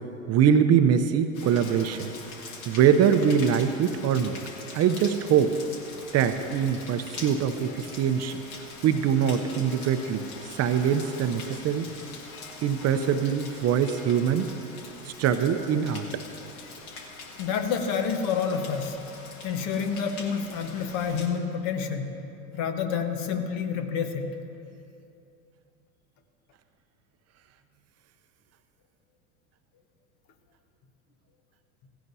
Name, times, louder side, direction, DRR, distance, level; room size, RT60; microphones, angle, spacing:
voice 1, 0.3-2.1 2.7-4.4 4.7-5.6 6.1-8.4 8.8-11.9 12.6-14.5 15.1-16.2, right 8 dB, 35° right, 9 dB, 0.7 m, -23 dB
Rain, 1.3-21.3, left 3 dB, 75° left, 1.9 m, -43 dB
voice 2, 17.4-19.0 19.4-22.2 22.5-24.3, left 6 dB, 55° left, 6 dB, 1.3 m, -28 dB
16.0 x 16.0 x 2.8 m, 2.7 s
hypercardioid pair, 85°, 43 cm